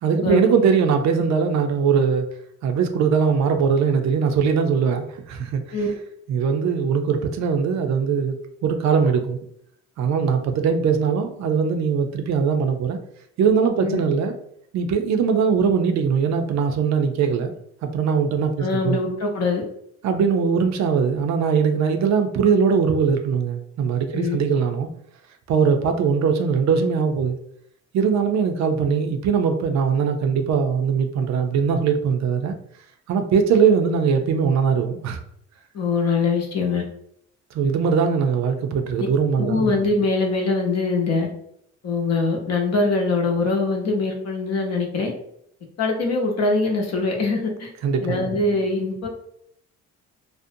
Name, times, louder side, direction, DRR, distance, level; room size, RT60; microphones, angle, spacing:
voice 1, 0.0-2.3 2.6-5.8 6.3-8.4 8.6-9.4 10.0-13.0 13.4-14.3 14.7-17.5 17.8-19.0 20.0-24.9 25.5-27.4 27.9-32.5 33.1-35.2 37.5-39.8 47.8-48.4, right 6 dB, 65° right, 6 dB, 0.4 m, -21 dB
voice 2, 18.6-19.6 24.1-24.4 35.7-36.8 39.4-41.3 41.8-45.1 45.8-47.7 48.0-49.1, left 3 dB, 60° left, 1 dB, 0.7 m, -23 dB
2.5 x 2.1 x 2.6 m, 0.70 s
cardioid pair, 90°, 30 cm